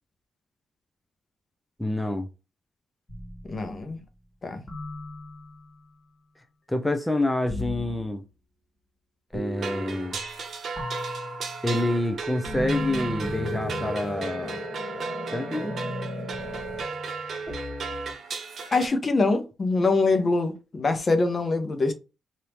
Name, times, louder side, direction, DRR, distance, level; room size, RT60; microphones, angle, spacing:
voice 1, 1.8-2.3 6.7-8.2 9.3-10.2 11.6-14.6 15.3-15.7, left 1 dB, 5° left, 0.7 m, -27 dB
sound 1, 3.1-3.9 4.7-5.7 7.5-8.0 9.3-10.5 10.8-18.1, left 1 dB, 25° left, 1.6 m, -36 dB
voice 2, 3.5-4.0 4.4-4.6 18.7-21.9, left 3 dB, 45° left, 0.9 m, -24 dB
sound 2, 9.6-18.9, right 5 dB, 65° right, 0.7 m, -35 dB
3.3 x 2.7 x 3.0 m
supercardioid pair, 55°, 0 cm